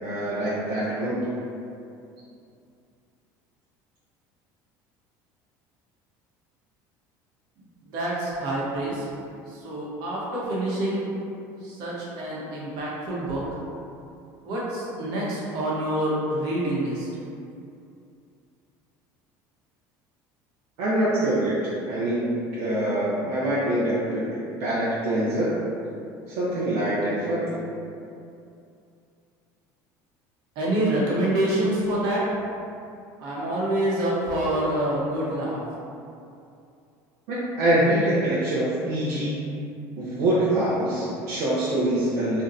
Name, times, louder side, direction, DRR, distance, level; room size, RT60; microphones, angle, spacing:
voice 1, 0.0-1.2 20.8-21.6 21.9-25.6 26.3-27.6 37.3-39.4 40.0-42.4, right 1 dB, 80° right, -9 dB, 0.6 m, -24 dB
voice 2, 7.8-9.1 9.5-11.1 11.6-13.4 14.4-17.1 30.6-32.2 33.2-35.6, right 1 dB, 65° right, -6 dB, 0.9 m, -26 dB
2.6 x 2.1 x 3.9 m, 2.5 s
cardioid pair, 140°, 8 cm